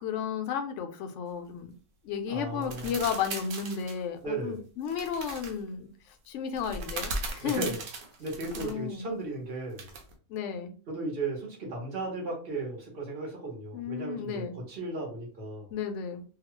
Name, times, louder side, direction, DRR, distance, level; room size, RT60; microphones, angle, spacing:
voice 1, 0.0-1.7 2.0-5.9 6.3-7.7 8.6-9.1 10.3-10.8 13.7-14.6 15.7-16.2, left 7 dB, 70° left, 6 dB, 0.8 m, -33 dB
voice 2, 2.3-3.0 4.2-4.6 7.4-7.8 8.2-9.9 10.9-15.7, right 2 dB, 50° right, -1 dB, 1.2 m, -35 dB
sound 1, 2.6-4.0 4.9-5.5 6.5-8.7 9.8-10.1, right 3 dB, 90° right, 1.1 m, -38 dB
2.8 x 2.3 x 3.0 m, 0.40 s
omnidirectional pair, 1.4 m